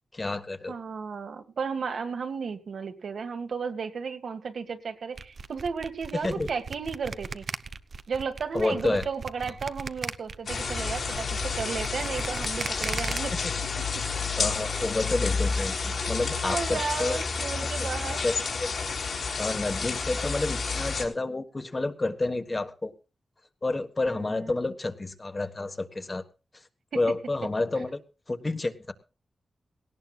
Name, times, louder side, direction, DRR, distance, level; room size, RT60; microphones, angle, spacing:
voice 1, 0.1-0.7 6.1-6.5 8.5-9.1 14.4-17.2 17.5-18.8 19.4-22.9 23.6-26.2 26.9-28.0 28.3-28.9, left 2 dB, 30° left, 9 dB, 1.4 m, -30 dB
voice 2, 0.7-7.4 8.1-13.3 15.2-15.3 16.0-18.2 24.0-24.5 26.9-27.1 27.8-27.9, right 5 dB, 80° right, 6 dB, 2.0 m, -34 dB
sound 1, 5.2-13.2, right 5 dB, 60° right, 0.8 m, -37 dB
sound 2, 10.5-21.0, left 4 dB, 70° left, 3.7 m, -30 dB
18.5 x 18.0 x 2.4 m, 0.32 s
wide cardioid pair, 95°, 0 cm